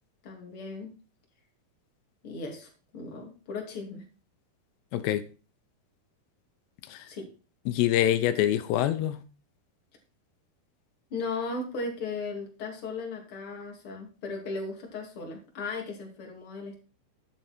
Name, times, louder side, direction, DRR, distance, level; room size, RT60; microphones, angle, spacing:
voice 1, 0.2-0.9 2.2-4.0 7.1-7.3 11.1-16.8, left 3 dB, 35° left, 1 dB, 3.3 m, -36 dB
voice 2, 4.9-5.2 6.9-7.1 7.7-9.2, left 12 dB, 85° left, 11 dB, 2.9 m, -25 dB
11.0 x 9.0 x 4.5 m, 0.35 s
omnidirectional pair, 4.7 m